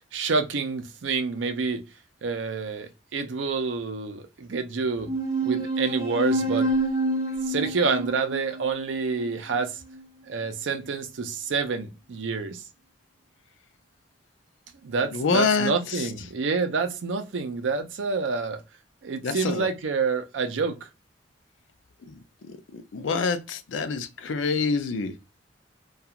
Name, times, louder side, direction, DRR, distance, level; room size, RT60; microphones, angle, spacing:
voice 1, 0.1-1.8 2.2-5.1 5.4-6.7 7.4-9.8 10.2-12.6 14.8-18.6 19.0-20.9, right 4 dB, 80° right, 0.5 m, -28 dB
sound 1, 5.1-10.0, right 1 dB, 20° right, 0.9 m, -28 dB
voice 2, 15.1-16.1 19.2-19.7 22.1-22.2 22.5-25.1, left 4 dB, 85° left, 0.4 m, -26 dB
2.4 x 2.3 x 2.8 m
head